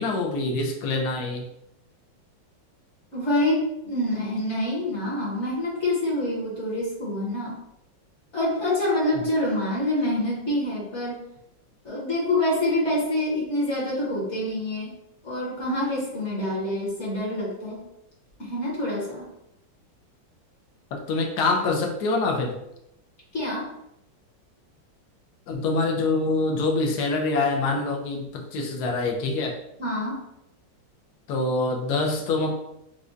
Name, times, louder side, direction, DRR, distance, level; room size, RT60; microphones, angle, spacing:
voice 1, 0.0-1.5 20.9-22.6 25.5-29.6 31.3-32.6, left 3 dB, 70° left, 2 dB, 1.0 m, -25 dB
voice 2, 3.1-7.5 8.3-11.2 11.8-14.9 15.2-17.8 18.4-19.3 23.3-23.7 29.8-30.2, left 1 dB, 45° left, -6 dB, 1.1 m, -26 dB
4.8 x 2.2 x 2.5 m, 0.81 s
omnidirectional pair, 2.1 m